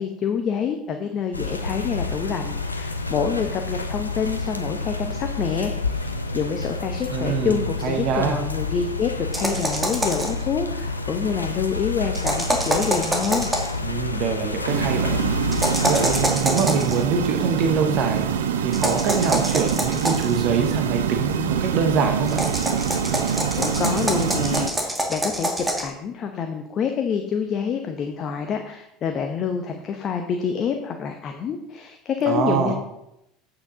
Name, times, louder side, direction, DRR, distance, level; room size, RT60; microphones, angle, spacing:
voice 1, 0.0-13.5 23.6-32.7, left 6 dB, 40° left, 5 dB, 0.9 m, -27 dB
sound 1, 1.3-16.3, left 3 dB, 85° left, 0.6 m, -29 dB
voice 2, 7.1-8.4 13.8-15.2 15.8-18.3 18.6-22.4 32.3-32.7, right 5 dB, 50° right, 4 dB, 1.1 m, -24 dB
sound 2, 9.3-10.4 12.1-13.8 15.5-17.0 18.7-20.4 22.3-25.9, right 1 dB, 15° right, 1.9 m, -25 dB
sound 3, 14.7-24.7, right 8 dB, 70° right, 0.6 m, -25 dB
8.4 x 8.0 x 3.9 m, 0.82 s
figure-of-eight pair, 70°, 0 cm